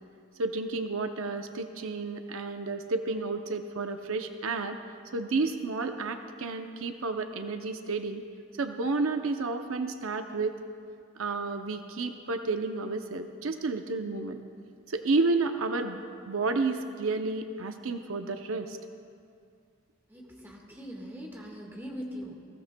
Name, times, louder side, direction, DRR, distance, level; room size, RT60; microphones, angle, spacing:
voice 1, 0.4-4.8 5.1-8.2 8.6-10.6 11.2-14.4 14.9-16.0 16.3-18.8, right 3 dB, 80° right, 6 dB, 0.6 m, -31 dB
voice 2, 20.1-22.3, equal, 10° right, -1 dB, 1.5 m, -41 dB
20.0 x 15.5 x 2.2 m, 2.3 s
head